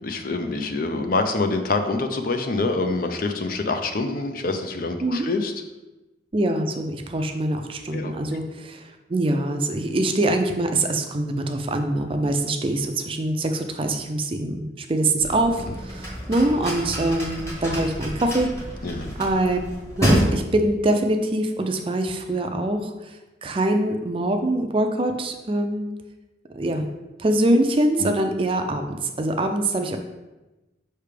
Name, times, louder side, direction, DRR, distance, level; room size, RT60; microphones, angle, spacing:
voice 1, 0.0-5.5 7.9-8.1 15.7-15.8 18.8-19.2 28.0-28.1, left 3 dB, 50° left, 6 dB, 0.5 m, -26 dB
voice 2, 6.3-18.5 19.2-19.6 20.0-23.2 23.4-25.9 26.5-26.9 27.2-30.0, right 1 dB, 30° right, 5 dB, 0.4 m, -24 dB
sound 1, 15.2-20.2, equal, 15° left, 1.1 m, -28 dB
5.6 x 3.3 x 5.0 m, 1.1 s
head